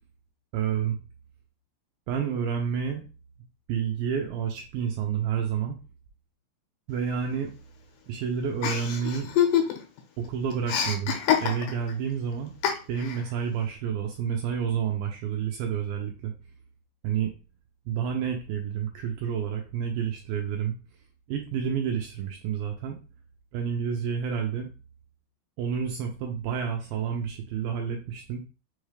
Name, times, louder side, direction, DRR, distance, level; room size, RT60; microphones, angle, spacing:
voice 1, 0.5-1.0 2.1-3.1 3.7-5.8 6.9-7.5 8.1-9.3 10.2-12.5 12.9-16.3 17.0-17.3 17.9-20.8 21.3-23.0 23.5-24.7 25.6-28.4, right 7 dB, 80° right, 2 dB, 2.1 m, -29 dB
Chuckle chortle, 8.6-10.0 10.2-11.9 12.6-13.2, left 9 dB, 90° left, 3.0 m, -26 dB
6.3 x 2.3 x 3.2 m, 0.33 s
omnidirectional pair, 4.7 m